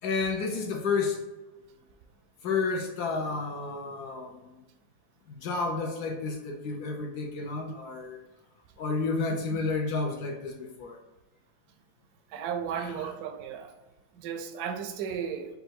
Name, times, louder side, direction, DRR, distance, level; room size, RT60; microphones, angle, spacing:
voice 1, 0.0-1.2 2.4-4.6 5.3-8.2 8.8-11.0 12.7-13.1, left 4 dB, 65° left, 2 dB, 1.0 m, -31 dB
voice 2, 12.3-13.7 14.1-15.5, right 7 dB, 75° right, 7 dB, 0.9 m, -34 dB
5.3 x 2.3 x 4.5 m, 1.1 s
omnidirectional pair, 2.2 m